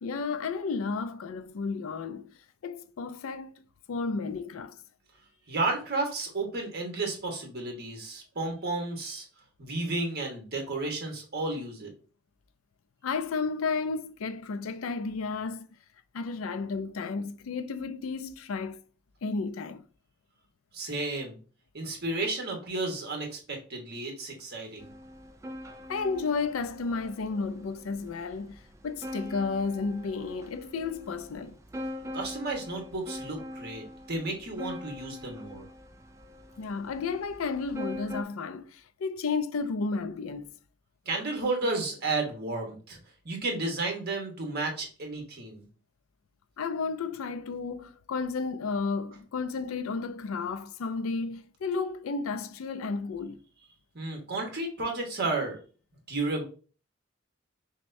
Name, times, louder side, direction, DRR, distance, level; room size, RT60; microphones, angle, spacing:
voice 1, 0.0-2.3 2.6-3.6 3.9-4.8 13.0-15.7 16.1-18.8 19.2-19.8 25.9-31.6 36.6-40.6 46.6-53.4, left 4 dB, 85° left, 0.4 m, -32 dB
voice 2, 5.5-9.2 9.6-11.9 20.7-21.4 21.7-24.9 32.1-35.6 41.0-43.0 43.2-45.6 53.9-55.6 56.1-56.4, right 2 dB, 50° right, 1.2 m, -32 dB
sound 1, 24.8-38.2, left 1 dB, 15° right, 0.3 m, -43 dB
6.0 x 2.2 x 2.6 m
head